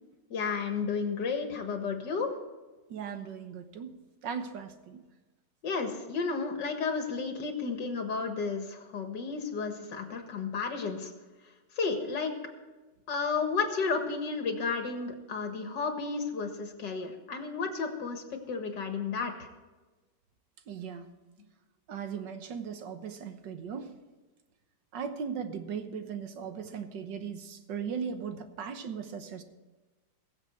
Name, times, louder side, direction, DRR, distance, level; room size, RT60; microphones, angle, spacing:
voice 1, 0.3-2.3 5.6-11.1 11.8-12.3 13.1-19.3, left 5 dB, 80° left, 5 dB, 2.3 m, -32 dB
voice 2, 2.9-4.0 4.2-5.0 20.7-21.1 21.9-23.9 24.9-29.4, right 7 dB, 90° right, 8 dB, 1.8 m, -38 dB
21.5 x 7.5 x 4.5 m, 1.2 s
omnidirectional pair, 1.9 m